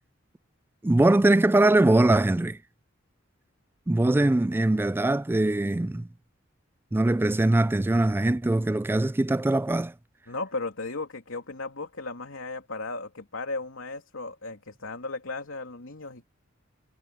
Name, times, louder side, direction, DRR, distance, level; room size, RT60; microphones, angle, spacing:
voice 1, 0.8-2.6 3.9-6.1 6.9-9.9, right 2 dB, 10° right, 0.3 m, -22 dB
voice 2, 10.3-16.2, left 3 dB, 80° left, 3.0 m, -35 dB
head